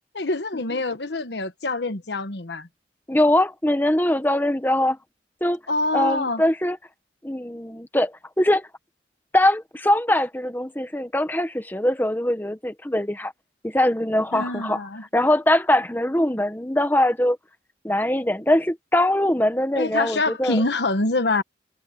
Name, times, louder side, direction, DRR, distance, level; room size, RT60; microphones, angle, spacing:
voice 1, 0.1-2.7 5.7-6.4 14.3-15.0 19.7-21.4, left 2 dB, 70° left, 1.3 m, -25 dB
voice 2, 3.1-5.0 5.4-5.6 5.9-6.8 7.2-8.7 9.3-13.3 13.6-14.8 15.1-17.4 17.8-20.6, left 1 dB, 10° left, 1.4 m, -22 dB
head